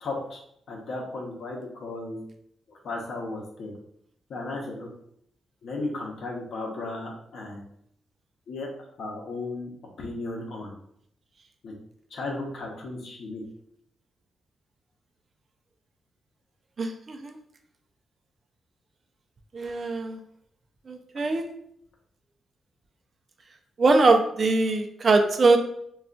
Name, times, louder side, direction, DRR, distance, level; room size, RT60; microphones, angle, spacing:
voice 1, 0.0-0.4 0.7-2.2 2.7-3.7 4.3-4.9 5.6-7.6 8.5-8.7 9.0-9.7 10.0-10.7 11.6-11.7 12.1-13.4, left 2 dB, 70° left, -1 dB, 0.7 m, -35 dB
voice 2, 16.8-17.4 19.5-20.2 20.9-21.5 23.8-25.6, right 3 dB, 45° right, 5 dB, 0.4 m, -22 dB
2.3 x 2.3 x 3.7 m, 0.70 s
cardioid pair, 90°, 0 cm